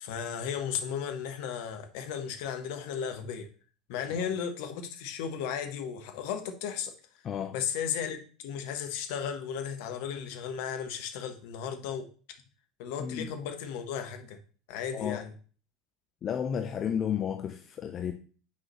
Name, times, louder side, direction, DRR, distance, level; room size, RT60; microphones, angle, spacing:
voice 1, 0.0-3.5 3.9-6.9 7.5-12.1 12.8-14.4 14.7-15.3, left 7 dB, 55° left, 1.0 m, -35 dB
voice 2, 7.2-7.6 13.0-13.3 14.9-15.2 16.2-18.1, left 8 dB, 35° left, 0.5 m, -32 dB
8.4 x 4.8 x 3.0 m
figure-of-eight pair, 75°, 0 cm